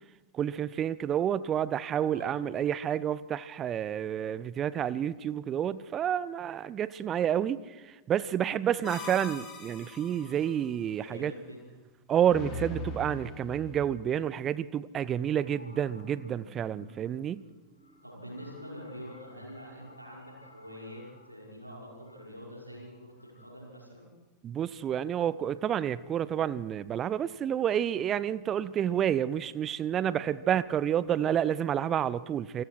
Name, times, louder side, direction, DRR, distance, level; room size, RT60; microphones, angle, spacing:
voice 1, 0.3-11.3 12.1-17.4 24.4-32.6, right 9 dB, 30° right, 18 dB, 0.7 m, -29 dB
sound 1, 8.8-10.5 12.3-13.9, left 2 dB, 30° left, 6.4 m, -40 dB
voice 2, 10.9-11.6 18.0-24.1 30.0-30.2, equal, 85° right, -3 dB, 5.9 m, -45 dB
sound 2, 15.4-23.5, left 1 dB, 80° left, 7.0 m, -55 dB
28.0 x 20.0 x 4.7 m, 1.2 s
figure-of-eight pair, 90°, 0 cm